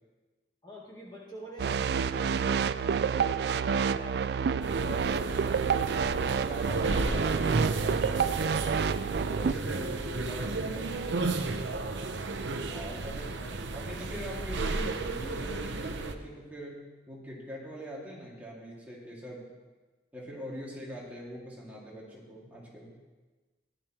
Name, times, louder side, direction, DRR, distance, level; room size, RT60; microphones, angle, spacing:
voice 1, 0.6-5.7 10.2-10.4 13.1-14.3, equal, 25° left, -6 dB, 1.9 m, -48 dB
sound 1, 1.6-9.5, right 6 dB, 65° right, 0.3 m, -28 dB
sound 2, 4.6-16.1, right 3 dB, 85° right, 0.8 m, -33 dB
voice 2, 6.1-8.3 9.3-11.1 12.7-13.3 13.7-19.5 20.1-22.9, equal, 10° right, -5 dB, 2.2 m, -42 dB
16.0 x 11.5 x 3.0 m, 1.3 s
head